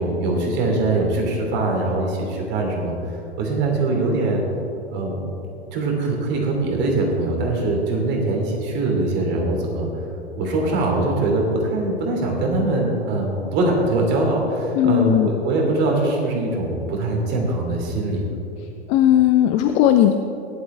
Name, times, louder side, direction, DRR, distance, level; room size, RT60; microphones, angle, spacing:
voice 1, 0.0-2.9 3.4-4.4 4.9-5.4 5.7-9.9 10.3-18.2, right 2 dB, 30° right, 0 dB, 3.0 m, -22 dB
voice 2, 14.7-15.3 18.9-20.1, left 11 dB, 20° left, 7 dB, 0.4 m, -16 dB
17.5 x 11.5 x 3.4 m, 2.8 s
figure-of-eight pair, 100°, 33 cm